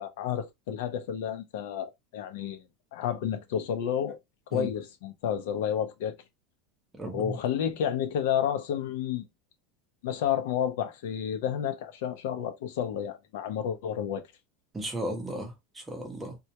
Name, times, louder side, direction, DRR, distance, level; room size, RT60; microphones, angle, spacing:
voice 1, 0.0-2.6 2.9-4.2 4.5-6.1 7.1-9.2 10.0-14.2, left 9 dB, 70° left, 0.5 m, -30 dB
voice 2, 7.0-7.4 14.7-16.4, right 1 dB, 10° right, 0.6 m, -35 dB
2.2 x 2.1 x 2.8 m
supercardioid pair, 160°, 0 cm